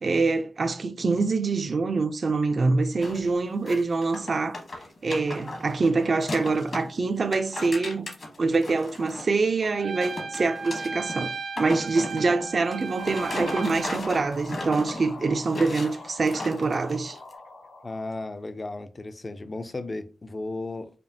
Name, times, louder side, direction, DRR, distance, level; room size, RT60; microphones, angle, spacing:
voice 1, 0.0-4.6 5.0-8.1 8.4-11.3 11.6-17.2, right 3 dB, 50° right, 0.5 m, -25 dB
sound 1, 3.0-3.3 3.6-6.9 7.2-9.7 10.0-17.3, left 2 dB, 55° left, 1.2 m, -36 dB
Trumpet, 9.8-14.0, right 4 dB, 80° right, 0.9 m, -36 dB
sound 2, 13.0-18.4, left 2 dB, 80° left, 1.7 m, -43 dB
voice 2, 17.8-20.9, left 2 dB, 30° left, 0.5 m, -35 dB
5.0 x 2.4 x 2.7 m
wide cardioid pair, 100°, 0 cm